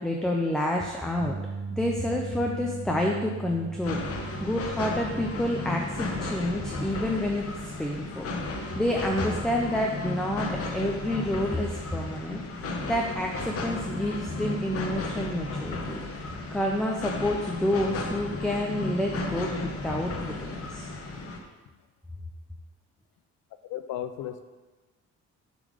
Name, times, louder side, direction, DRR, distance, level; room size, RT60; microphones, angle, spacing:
voice 1, 0.0-1.4 1.7-7.5 7.8-12.4 12.8-16.0 16.5-20.9, left 1 dB, ahead, 0 dB, 0.5 m, -29 dB
sound 1, 1.2-13.5 13.8-14.1 16.2-16.3, right 4 dB, 40° right, 0.9 m, -41 dB
sound 2, 3.8-21.4, left 2 dB, 50° left, 0.9 m, -34 dB
voice 2, 23.7-24.4, left 11 dB, 80° left, 10 dB, 0.5 m, -34 dB
7.4 x 3.4 x 5.0 m, 1.2 s
cardioid pair, 115°, 30 cm